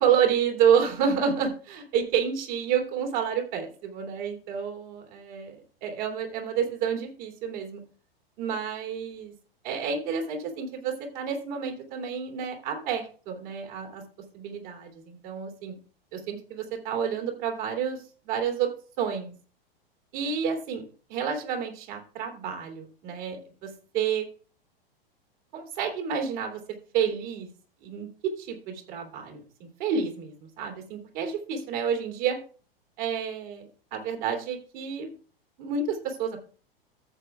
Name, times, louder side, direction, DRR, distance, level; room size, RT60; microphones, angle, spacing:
voice 1, 0.0-7.8 8.4-9.3 9.6-14.0 14.3-15.7 16.1-18.0 18.2-18.7 19.0-19.3 20.1-20.8 21.1-24.2 25.5-26.6 26.9-27.5 27.8-28.1 28.4-32.4 33.0-33.6 33.9-35.1 35.6-36.4, right 7 dB, 50° right, 3 dB, 2.7 m, -29 dB
14.5 x 7.8 x 2.4 m, 0.39 s
figure-of-eight pair, 100°, 30 cm